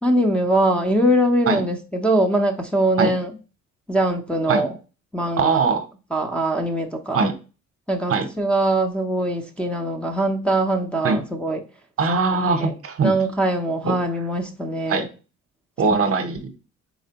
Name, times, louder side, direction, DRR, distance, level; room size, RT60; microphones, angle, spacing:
voice 1, 0.0-3.3 3.9-4.8 5.1-5.6 6.1-7.3 7.9-11.6 12.5-12.7 13.0-15.1, right 1 dB, 5° left, 0.6 m, -22 dB
voice 2, 5.4-5.8 7.1-7.3 8.1-8.3 11.0-11.2 12.0-13.1 13.8-13.9 14.9-15.1 15.8-16.5, right 4 dB, 50° right, 0.8 m, -21 dB
4.2 x 3.2 x 2.8 m
cardioid pair, 90°, 30 cm